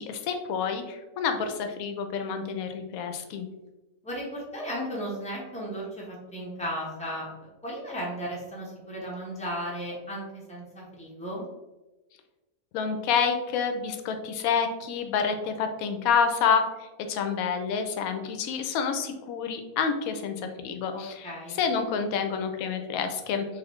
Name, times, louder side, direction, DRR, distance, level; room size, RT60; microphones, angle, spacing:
voice 1, 0.0-3.5 12.7-16.6 17.1-21.3 21.6-23.4, left 6 dB, 75° left, 6 dB, 1.0 m, -28 dB
voice 2, 4.0-11.4 20.9-21.6, equal, 5° left, -4 dB, 0.7 m, -35 dB
4.0 x 2.6 x 3.0 m, 1.1 s
omnidirectional pair, 1.5 m